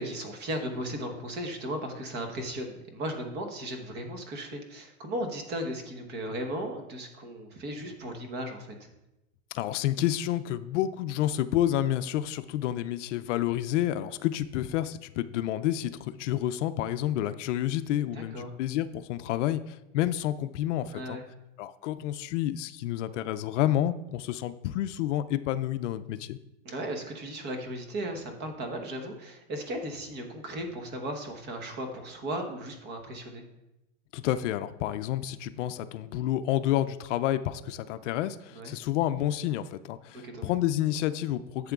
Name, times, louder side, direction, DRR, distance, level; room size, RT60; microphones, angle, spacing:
voice 1, 0.0-8.9 18.1-18.5 20.9-21.2 26.6-33.4 38.5-38.7 40.2-40.5, right 1 dB, 25° right, 5 dB, 1.0 m, -36 dB
voice 2, 9.5-21.2 21.6-26.4 34.1-41.7, left 12 dB, 70° left, 12 dB, 0.5 m, -29 dB
11.5 x 7.5 x 2.4 m, 0.94 s
supercardioid pair, 155°, 38 cm